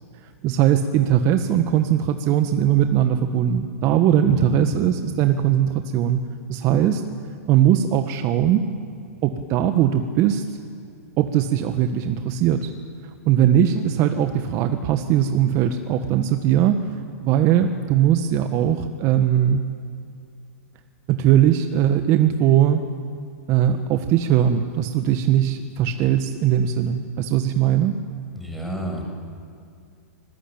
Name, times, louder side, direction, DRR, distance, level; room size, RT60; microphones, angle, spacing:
voice 1, 0.2-6.2 6.5-7.0 7.5-8.6 9.2-10.6 11.2-12.7 13.0-19.6 21.1-22.8 23.5-28.0, right 10 dB, 40° right, 7 dB, 1.6 m, -20 dB
voice 2, 4.3-4.7 28.3-29.1, equal, ahead, 1 dB, 6.9 m, -30 dB
26.0 x 20.5 x 9.0 m, 2.3 s
hypercardioid pair, 125°, 8 cm